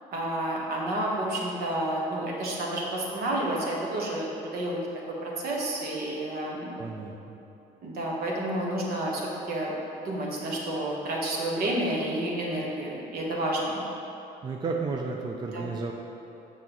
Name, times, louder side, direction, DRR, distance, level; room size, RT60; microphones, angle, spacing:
voice 1, 0.1-4.8 5.1-6.8 7.8-9.7 10.0-13.8 15.5-15.7, right 1 dB, 65° right, -3 dB, 1.3 m, -30 dB
voice 2, 6.8-7.4 14.4-15.9, right 4 dB, 25° right, 1 dB, 0.4 m, -32 dB
6.6 x 6.0 x 3.0 m, 2.9 s
cardioid pair, 110°, 17 cm